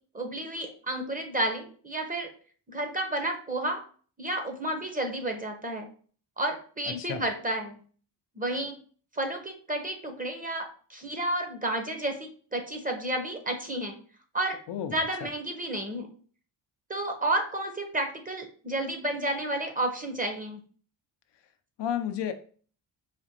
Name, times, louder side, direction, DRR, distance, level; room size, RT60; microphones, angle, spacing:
voice 1, 0.1-2.3 2.7-3.8 4.2-5.9 6.4-7.8 8.4-8.7 9.1-14.0 14.3-14.6 14.9-16.1 16.9-20.6, right 1 dB, 20° right, 4 dB, 0.8 m, -31 dB
voice 2, 21.8-22.3, left 9 dB, 60° left, 8 dB, 0.5 m, -31 dB
5.0 x 2.4 x 2.8 m, 0.43 s
cardioid pair, 90°, 47 cm